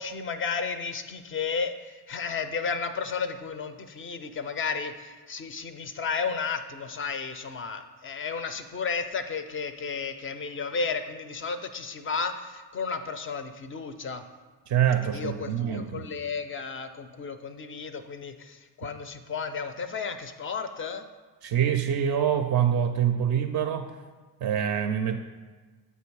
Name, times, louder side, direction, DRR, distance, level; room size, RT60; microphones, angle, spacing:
voice 1, 0.0-1.7 2.1-14.2 15.1-21.0, left 5 dB, 25° left, 9 dB, 0.4 m, -33 dB
voice 2, 14.7-16.1 21.4-23.9 24.4-25.2, right 9 dB, 40° right, 6 dB, 0.4 m, -25 dB
7.9 x 2.7 x 4.6 m, 1.4 s
figure-of-eight pair, 40°, 50 cm